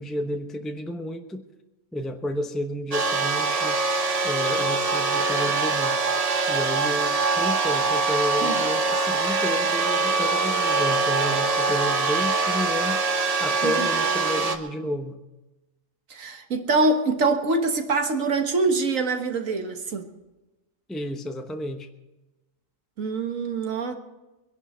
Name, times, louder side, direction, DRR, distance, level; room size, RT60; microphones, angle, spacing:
voice 1, 0.0-1.5 1.9-3.8 4.2-6.0 6.5-13.0 13.4-15.2 20.9-21.9, left 1 dB, ahead, 0.8 m, -31 dB
sound 1, 2.9-14.6, right 3 dB, 30° right, 1.0 m, -23 dB
voice 2, 16.1-20.1 23.0-23.9, right 3 dB, 70° right, 1.7 m, -24 dB
23.0 x 11.0 x 4.4 m
omnidirectional pair, 1.4 m